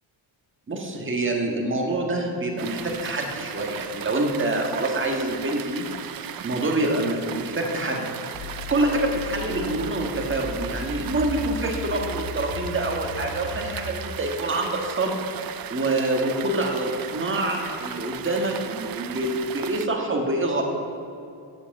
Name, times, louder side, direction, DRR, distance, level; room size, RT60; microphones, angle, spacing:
voice 1, 0.7-8.1 8.7-15.3 15.7-20.6, right 2 dB, 25° right, 1 dB, 1.6 m, -26 dB
sound 1, 2.6-19.9, right 10 dB, 50° right, 0.5 m, -36 dB
sound 2, 8.3-13.9, left 4 dB, 50° left, 0.8 m, -36 dB
8.1 x 7.7 x 7.7 m, 2.5 s
cardioid pair, 110°, 49 cm